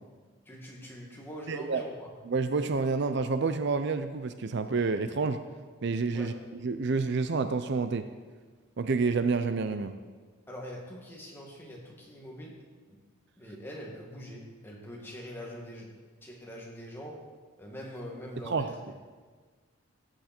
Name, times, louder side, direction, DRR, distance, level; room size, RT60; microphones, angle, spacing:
voice 1, 0.5-2.1 6.1-6.4 10.5-12.6 12.9-13.0 13.4-16.0 16.2-17.3 17.6-18.8, equal, 10° left, -3 dB, 2.1 m, -43 dB
voice 2, 1.5-1.8 2.3-5.4 5.8-6.3 6.6-8.1 8.8-9.9 18.5-18.7, right 4 dB, 55° right, 10 dB, 0.5 m, -28 dB
15.5 x 8.8 x 4.4 m, 1.5 s
head